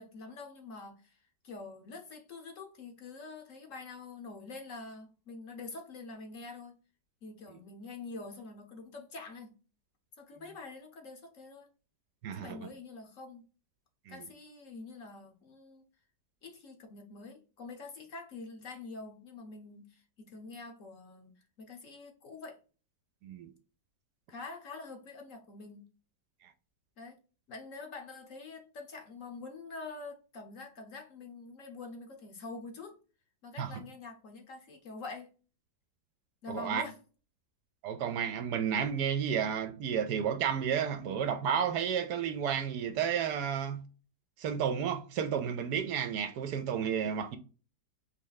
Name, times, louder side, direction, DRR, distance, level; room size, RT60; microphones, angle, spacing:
voice 1, 0.0-6.7 7.2-9.5 10.2-11.7 12.3-13.4 14.1-15.8 16.4-22.6 24.3-25.8 27.0-27.2 27.5-33.0 33.4-35.3 36.4-37.0, left 3 dB, 55° left, 1.1 m, -46 dB
voice 2, 12.2-12.6 14.1-14.2 23.2-23.5 33.6-33.7 36.5-36.8 37.8-43.8 44.4-47.4, right 8 dB, 75° right, 1.1 m, -32 dB
4.2 x 3.1 x 3.9 m
omnidirectional pair, 1.8 m